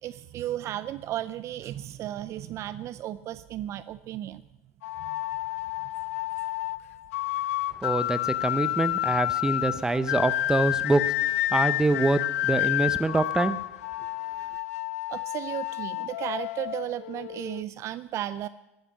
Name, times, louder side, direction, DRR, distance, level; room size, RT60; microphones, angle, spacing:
voice 1, 0.0-4.4 5.0-5.2 15.1-18.5, right 12 dB, 40° right, 16 dB, 0.5 m, -34 dB
sound 1, 4.8-17.6, left 15 dB, 75° left, 0.4 m, -30 dB
voice 2, 7.8-13.6, right 2 dB, 10° right, 13 dB, 0.8 m, -25 dB
13.5 x 12.5 x 7.1 m, 0.95 s
hypercardioid pair, 110°, 8 cm